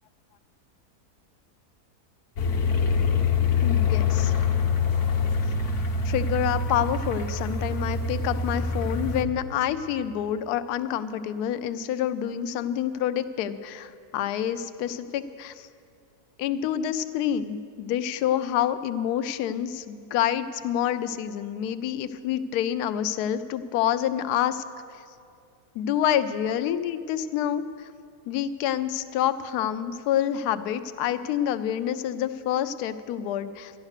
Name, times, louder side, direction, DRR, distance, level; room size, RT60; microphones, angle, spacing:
sound 1, 2.4-9.2, left 5 dB, 50° left, 1.2 m, -25 dB
voice 1, 3.6-4.3 6.0-15.7 16.4-24.6 25.8-27.9 28.3-33.7, left 10 dB, 80° left, 12 dB, 1.1 m, -27 dB
12.0 x 11.5 x 6.5 m, 2.3 s
omnidirectional pair, 1.7 m